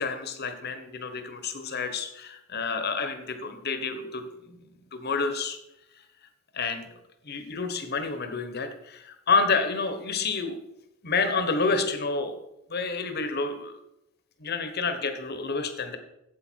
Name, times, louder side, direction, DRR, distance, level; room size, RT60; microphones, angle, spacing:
voice 1, 0.0-5.6 6.5-6.9 7.2-10.6 11.0-12.4 12.7-13.7 14.4-16.0, left 4 dB, 50° left, 8 dB, 1.1 m, -29 dB
8.7 x 7.8 x 4.6 m, 0.84 s
head